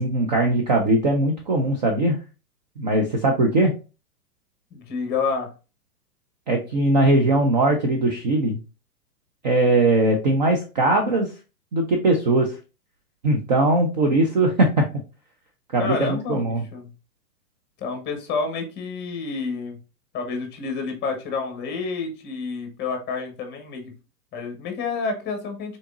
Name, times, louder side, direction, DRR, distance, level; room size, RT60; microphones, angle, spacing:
voice 1, 0.0-2.2 2.8-3.7 6.5-8.6 9.4-11.3 11.7-12.6 13.2-14.8 15.7-16.6, right 2 dB, 30° right, 2 dB, 0.4 m, -20 dB
voice 2, 4.7-5.5 15.8-16.9 17.8-19.8 20.1-23.9 24.3-25.8, left 4 dB, 20° left, 4 dB, 1.0 m, -29 dB
3.9 x 3.4 x 2.4 m, 0.32 s
hypercardioid pair, 130°, 47 cm